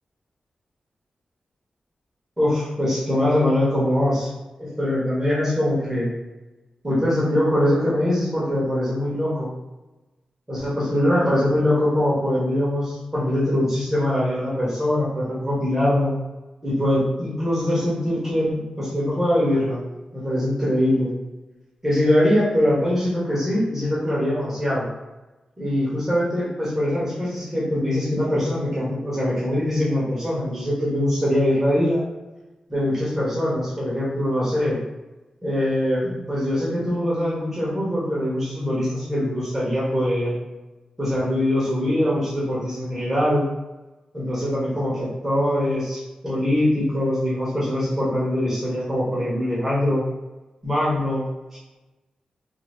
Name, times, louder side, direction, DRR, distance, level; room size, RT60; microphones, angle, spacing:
voice 1, 2.4-4.3 4.6-6.1 6.8-9.5 10.5-16.1 16.6-19.8 20.1-21.1 21.8-24.9 25.6-32.0 32.7-34.8 35.4-40.4 41.0-43.4 44.1-50.0 50.6-51.3, left 1 dB, 15° right, -8 dB, 1.3 m, -22 dB
3.7 x 2.1 x 3.2 m, 1.1 s
cardioid pair, 75°, 2 cm